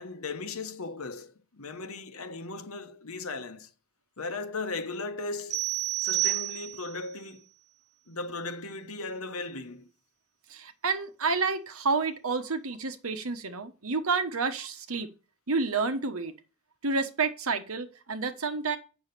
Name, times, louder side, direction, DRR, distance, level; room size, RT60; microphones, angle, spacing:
voice 1, 0.0-3.7 4.2-5.6 6.0-7.4 8.1-9.9, left 3 dB, 80° left, 1.2 m, -37 dB
sound 1, 5.5-7.0, right 17 dB, 35° right, 0.8 m, -29 dB
voice 2, 10.5-15.1 15.5-16.3 16.8-18.8, right 4 dB, 75° right, 1.2 m, -29 dB
8.0 x 6.3 x 6.8 m
head